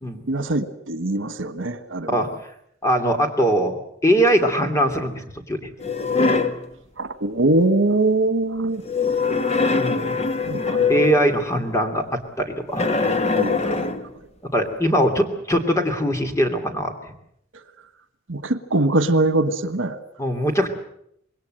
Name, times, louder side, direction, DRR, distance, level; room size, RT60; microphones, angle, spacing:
voice 1, 0.3-2.2 7.0-8.8 10.4-11.0 13.3-14.3 17.5-17.6 18.3-20.0, right 2 dB, 80° right, 12 dB, 1.5 m, -23 dB
voice 2, 2.8-3.8 4.0-5.7 9.8-10.1 10.9-12.9 14.5-16.9 20.2-20.7, equal, 15° left, 6 dB, 2.9 m, -21 dB
sound 1, 5.8-6.6 8.8-11.4 12.7-14.1, left 4 dB, 35° left, 1.6 m, -22 dB
26.0 x 21.0 x 7.8 m, 0.72 s
head